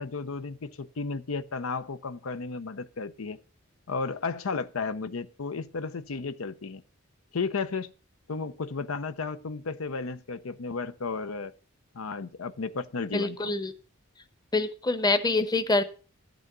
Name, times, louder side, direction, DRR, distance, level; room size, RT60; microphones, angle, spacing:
voice 1, 0.0-3.4 3.9-6.8 7.3-7.9 8.3-11.5 11.9-13.5, left 4 dB, 85° left, 0.7 m, -33 dB
voice 2, 13.1-13.7 14.5-15.8, left 2 dB, 20° left, 0.9 m, -25 dB
12.0 x 6.3 x 6.6 m
head